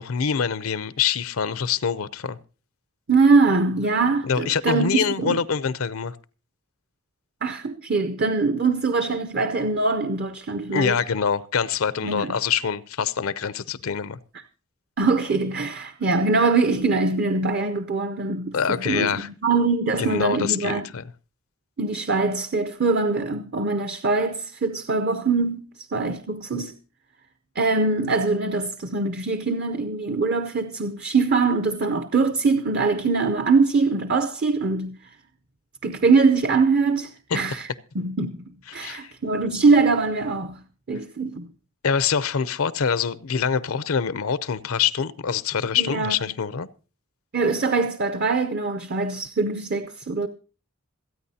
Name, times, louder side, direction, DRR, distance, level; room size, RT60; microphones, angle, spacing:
voice 1, 0.0-2.4 4.2-6.2 10.7-14.2 18.5-19.3 20.0-21.1 38.8-39.1 41.8-46.7, left 6 dB, 80° left, 0.6 m, -25 dB
voice 2, 3.1-4.9 5.2-5.4 7.4-10.9 12.0-12.4 15.0-20.9 21.8-26.7 27.6-35.0 35.8-37.7 37.9-38.4 38.7-40.6 40.9-41.5 45.8-46.1 47.3-50.3, right 4 dB, 45° right, 0.6 m, -23 dB
27.0 x 9.2 x 2.8 m
head